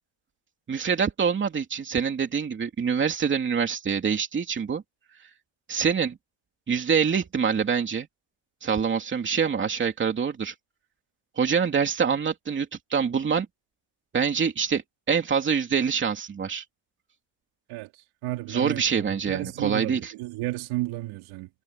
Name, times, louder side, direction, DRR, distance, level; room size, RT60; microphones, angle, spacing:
voice 1, 0.7-4.8 5.7-6.2 6.7-8.1 8.6-10.5 11.4-13.5 14.1-16.6 18.5-20.1, right 6 dB, 25° right, 2.9 m, -25 dB
voice 2, 18.2-18.8 19.3-21.5, right 18 dB, 85° right, 3.6 m, -32 dB
cardioid pair, 170°, 48 cm